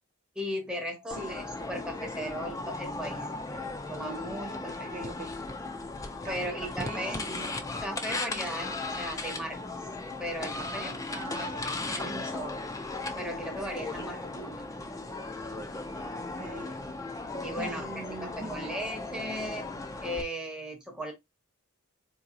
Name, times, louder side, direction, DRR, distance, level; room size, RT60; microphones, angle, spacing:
voice 1, 0.3-1.4 1.7-3.3 3.9-4.9 6.3-7.2 7.8-9.8 10.2-11.0 11.4-11.5 11.9-12.6 13.1-14.7 17.4-17.9 18.2-19.7 20.0-21.1, equal, 5° right, 0.8 m, -37 dB
sound 1, 1.1-20.2, left 2 dB, 15° left, 0.4 m, -37 dB
voice 2, 4.9-5.3 6.2-7.7 11.1-11.6 16.2-16.9 17.3-18.8, right 3 dB, 35° right, 0.7 m, -43 dB
3.8 x 2.8 x 2.4 m
head